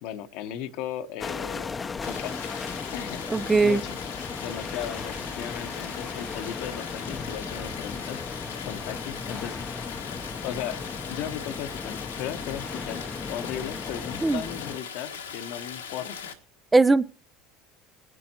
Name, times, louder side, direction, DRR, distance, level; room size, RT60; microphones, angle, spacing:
voice 1, 0.0-1.8 2.1-2.4 2.9-4.0 4.4-8.2 8.6-9.6 10.4-10.8 11.1-16.4, left 10 dB, 65° left, 9 dB, 1.1 m, -36 dB
sound 1, 1.2-14.8, left 4 dB, 25° left, 0.8 m, -36 dB
Stream, 2.0-16.3, left 7 dB, 85° left, 1.5 m, -40 dB
voice 2, 3.3-3.8 14.2-14.4 16.7-17.0, right 3 dB, 15° right, 15 dB, 0.6 m, -19 dB
21.0 x 11.0 x 2.9 m, 0.34 s
hypercardioid pair, 70°, 0 cm